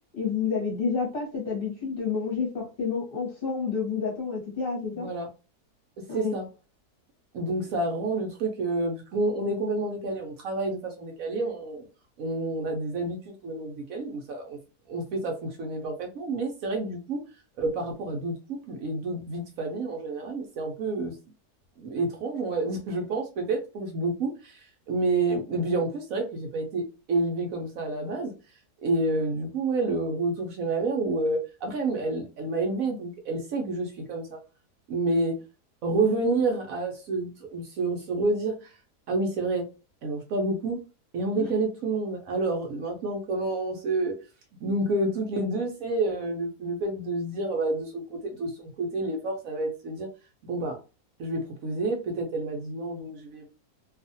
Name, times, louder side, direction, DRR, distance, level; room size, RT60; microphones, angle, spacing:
voice 1, 0.1-5.1 6.1-6.4 41.3-41.5, left 5 dB, 40° left, -3 dB, 1.0 m, -29 dB
voice 2, 4.9-5.3 6.1-6.5 7.3-11.9 12.2-14.6 14.9-17.2 17.6-21.1 21.8-26.8 27.1-28.3 28.8-34.4 34.9-35.4 35.8-38.7 39.1-39.7 40.0-40.8 41.1-44.1 44.6-50.1 50.4-50.8 51.2-53.5, right 2 dB, 65° right, 2 dB, 1.0 m, -29 dB
2.7 x 2.4 x 2.6 m, 0.31 s
omnidirectional pair, 1.7 m